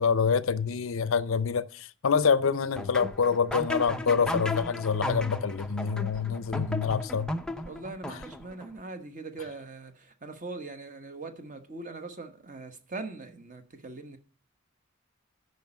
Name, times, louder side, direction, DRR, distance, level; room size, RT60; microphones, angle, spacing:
voice 1, 0.0-7.3, left 6 dB, 65° left, 0.5 m, -26 dB
sound 1, 2.8-8.7, left 1 dB, 5° left, 0.4 m, -35 dB
voice 2, 7.6-14.2, right 3 dB, 35° right, 1.1 m, -41 dB
9.3 x 5.4 x 7.0 m
head